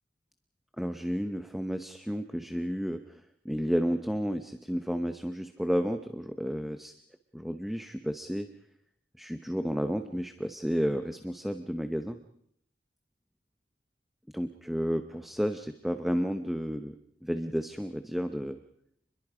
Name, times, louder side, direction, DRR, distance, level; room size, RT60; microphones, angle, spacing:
voice 1, 0.8-3.2 3.4-7.0 7.3-8.5 9.2-12.2 14.3-18.6, equal, ahead, 8 dB, 0.8 m, -32 dB
29.5 x 21.5 x 5.0 m, 0.69 s
head